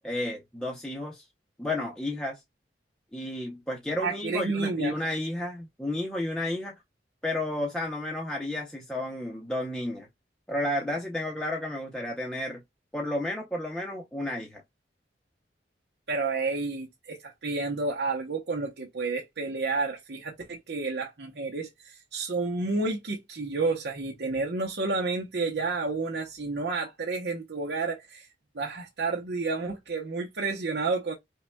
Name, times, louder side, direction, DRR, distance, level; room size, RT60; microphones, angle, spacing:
voice 1, 0.0-1.3 1.6-2.4 3.1-6.7 7.2-10.1 10.5-12.6 12.9-14.6, left 1 dB, 5° left, 0.6 m, -32 dB
voice 2, 4.0-4.9 16.1-28.3 28.5-31.1, right 3 dB, 65° right, 0.8 m, -30 dB
5.5 x 2.2 x 2.2 m
head